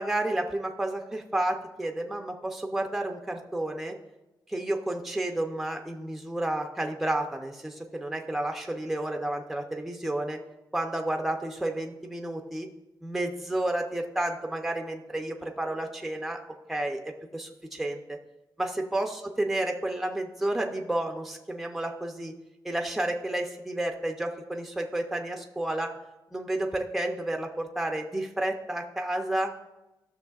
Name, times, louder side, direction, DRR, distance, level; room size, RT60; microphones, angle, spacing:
voice 1, 0.0-3.9 4.5-10.4 10.7-12.7 13.0-16.4 16.7-18.2 18.6-22.3 22.6-25.9 26.3-29.5, right 1 dB, ahead, 3 dB, 0.5 m, -31 dB
14.0 x 6.4 x 2.3 m, 0.99 s
wide cardioid pair, 180°, 8 cm